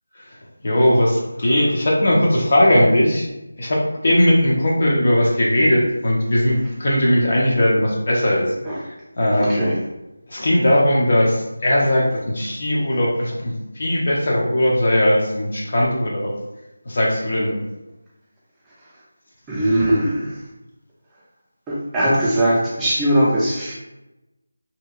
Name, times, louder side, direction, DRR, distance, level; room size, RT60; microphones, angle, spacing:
voice 1, 0.6-3.3 3.6-8.5 8.8-9.6 10.3-16.3 16.9-17.6, left 1 dB, 45° left, -3 dB, 0.5 m, -18 dB
voice 2, 9.4-9.8 19.5-20.4 21.7-23.7, right 1 dB, 5° right, -8 dB, 0.5 m, -20 dB
2.7 x 2.2 x 2.4 m, 0.97 s
figure-of-eight pair, 170°, 0 cm